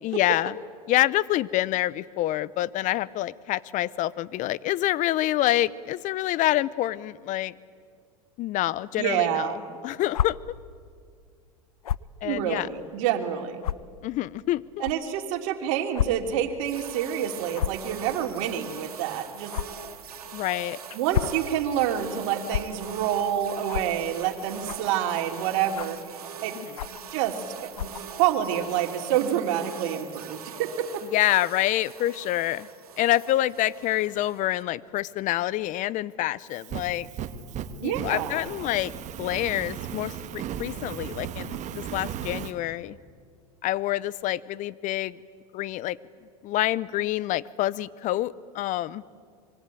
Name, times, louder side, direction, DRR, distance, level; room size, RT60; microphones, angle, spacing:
voice 1, 0.0-0.6 0.9-7.5 8.4-9.5 9.8-10.4 12.2-12.7 14.0-14.6 20.3-20.8 26.5-26.7 31.1-32.7 33.0-37.1 37.8-38.9 39.2-43.0 43.6-45.2 45.5-46.0 46.4-49.0, left 15 dB, 40° left, 20 dB, 0.8 m, -27 dB
voice 2, 9.0-9.6 12.2-13.6 14.8-19.5 20.9-26.6 26.8-31.1 37.8-38.4, right 10 dB, 60° right, 5 dB, 3.0 m, -28 dB
sound 1, 10.1-10.3 11.8-12.1 12.8-12.9 13.6-13.7 14.8-14.9 15.9-16.1 16.4-16.5 17.5-17.8 19.5-19.7 20.9-21.4 22.5-22.6 23.7-23.9 24.6-24.9 25.7-26.0 26.8-27.0 27.7-28.0, left 11 dB, 85° left, 0.6 m, -28 dB
sound 2, 16.6-34.6, right 7 dB, 85° right, 2.7 m, -42 dB
Fire, 36.4-42.5, right 8 dB, 40° right, 1.7 m, -36 dB
25.5 x 23.0 x 9.2 m, 2.1 s
hypercardioid pair, 90°, 19 cm